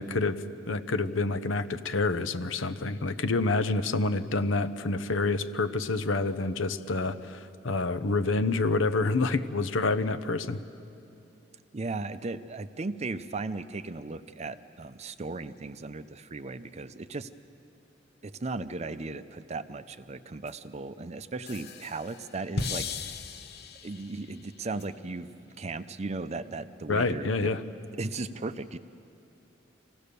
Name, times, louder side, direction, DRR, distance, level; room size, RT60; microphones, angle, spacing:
voice 1, 0.0-10.6 26.9-27.6, left 3 dB, 85° left, 12 dB, 0.7 m, -28 dB
voice 2, 11.7-17.3 18.2-22.9 23.8-25.3 25.6-27.5 28.0-28.8, right 3 dB, 35° right, 12 dB, 0.5 m, -36 dB
sound 1, 20.5-20.6 21.5-24.2 24.8-24.9, left 4 dB, 55° left, 0.9 m, -36 dB
25.5 x 16.0 x 6.8 m, 2.7 s
head